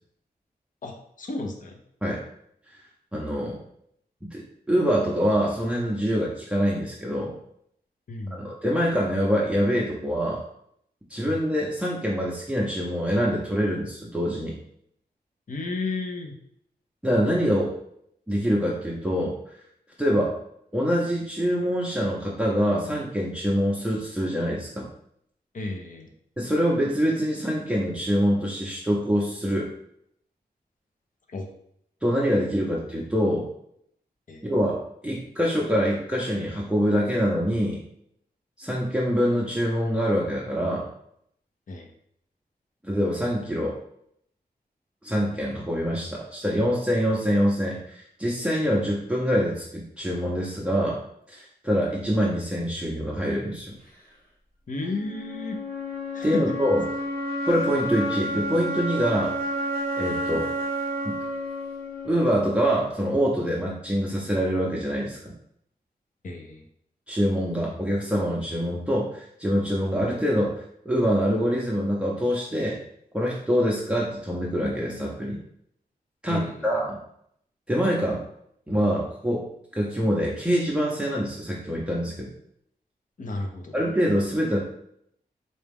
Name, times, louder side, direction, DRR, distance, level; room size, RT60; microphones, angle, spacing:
voice 1, 0.8-1.8 8.1-8.4 11.2-11.3 15.5-16.3 25.5-26.1 31.3-31.5 34.3-34.5 41.7-41.9 54.7-55.6 56.1-56.6 66.2-66.6 76.3-76.8 83.2-83.8, left 2 dB, 50° left, 2 dB, 0.7 m, -33 dB
voice 2, 3.1-3.6 4.2-7.4 8.3-10.4 11.1-14.6 17.0-17.7 18.3-19.4 20.0-20.3 20.7-24.9 26.4-29.7 32.0-33.5 34.4-34.8 35.0-37.8 38.6-40.9 42.8-43.8 45.0-51.0 51.3-53.8 56.2-56.8 57.4-59.3 60.0-60.5 61.0-61.2 62.0-65.3 67.1-70.5 70.8-72.8 73.1-75.4 76.2-77.0 77.7-78.2 78.7-79.5 79.7-82.3 83.7-84.6, equal, 5° right, -5 dB, 0.6 m, -25 dB
sound 1, 54.8-62.7, equal, 65° left, 1.1 m, -30 dB
4.1 x 2.3 x 3.5 m, 0.71 s
wide cardioid pair, 75°, 17 cm